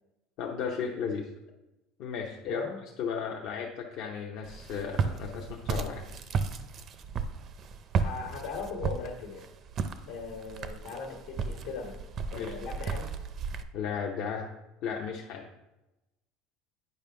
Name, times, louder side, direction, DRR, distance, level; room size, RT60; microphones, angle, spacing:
voice 1, 0.4-1.3 2.0-2.6 3.0-6.0 12.3-12.5 13.7-14.5 14.8-15.5, left 6 dB, 60° left, -1 dB, 0.7 m, -34 dB
voice 2, 2.5-2.8 8.0-9.5 10.1-12.0 12.3-13.1, left 4 dB, 75° left, 2 dB, 1.4 m, -39 dB
Walk footsteps, 4.4-13.6, right 5 dB, 40° right, 0.4 m, -34 dB
9.0 x 5.1 x 3.4 m, 0.98 s
cardioid pair, 145°, 0 cm